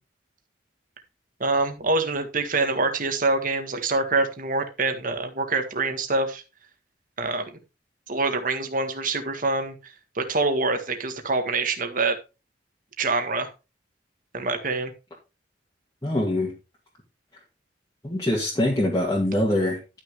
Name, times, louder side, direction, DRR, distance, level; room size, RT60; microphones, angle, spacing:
voice 1, 1.4-6.4 7.2-7.4 8.1-9.7 10.1-12.2 13.0-13.5 14.3-14.9, right 3 dB, 50° right, 6 dB, 1.7 m, -25 dB
voice 2, 16.0-16.5 18.0-19.8, left 1 dB, 20° left, -4 dB, 2.2 m, -23 dB
12.0 x 6.2 x 3.6 m, 0.28 s
head